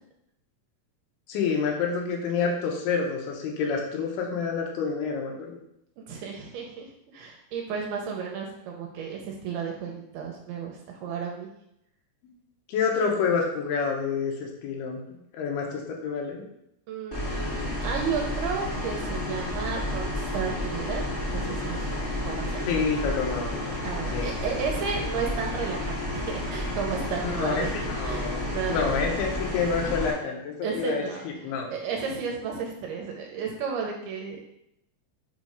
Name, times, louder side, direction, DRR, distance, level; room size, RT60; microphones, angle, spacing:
voice 1, 1.3-5.6 12.7-15.0 15.3-16.4 22.7-23.8 24.1-24.3 27.2-28.4 28.7-31.7, left 5 dB, 85° left, 0 dB, 3.0 m, -28 dB
voice 2, 6.0-11.5 16.9-21.0 21.3-21.8 22.2-22.6 23.8-29.0 30.6-31.2 31.7-34.4, right 6 dB, 85° right, 0 dB, 2.5 m, -33 dB
sound 1, 17.1-30.1, left 1 dB, 20° left, 1.4 m, -31 dB
6.9 x 3.2 x 5.1 m, 0.77 s
omnidirectional pair, 4.7 m